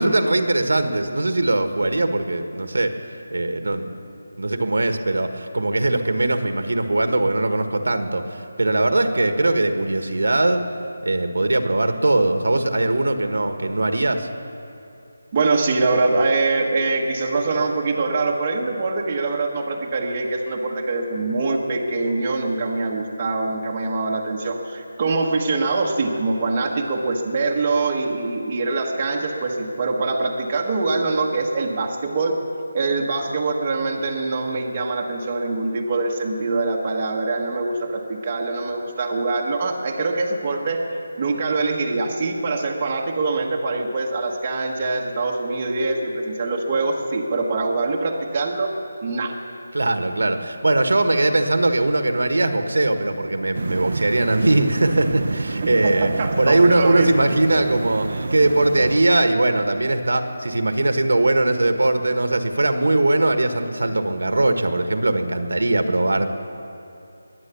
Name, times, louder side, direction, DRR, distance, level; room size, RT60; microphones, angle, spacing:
voice 1, 0.0-3.9 4.4-10.6 11.0-14.3 49.7-56.1 56.4-66.3, right 2 dB, 80° right, 7 dB, 1.5 m, -20 dB
voice 2, 15.3-32.4 32.7-40.8 41.2-48.7 49.0-49.3 55.6-57.1, right 3 dB, 25° right, -1 dB, 1.3 m, -23 dB
sound 1, 53.5-59.0, right 3 dB, 50° right, 0.8 m, -29 dB
21.0 x 9.8 x 7.0 m, 2.7 s
figure-of-eight pair, 175°, 0 cm